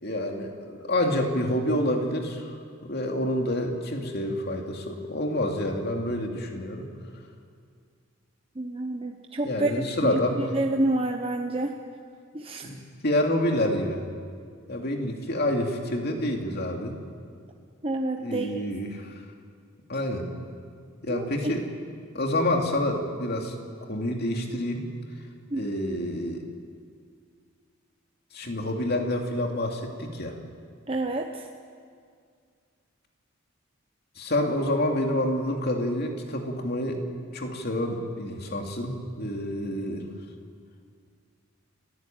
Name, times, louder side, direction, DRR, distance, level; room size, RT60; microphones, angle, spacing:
voice 1, 0.0-2.6 2.8-6.9 9.4-10.4 12.6-14.1 14.7-17.0 18.2-19.1 19.9-20.3 21.0-21.6 22.1-23.6 23.9-24.8 25.5-26.4 28.3-30.4 34.2-37.0 37.3-40.1, left 1 dB, 50° left, 2 dB, 2.7 m, -28 dB
voice 2, 8.6-11.8 12.3-12.7 17.8-18.6 21.1-21.3 25.5-25.7 30.9-31.5, right 2 dB, 25° right, 3 dB, 0.9 m, -28 dB
29.5 x 14.5 x 9.1 m, 2.2 s
head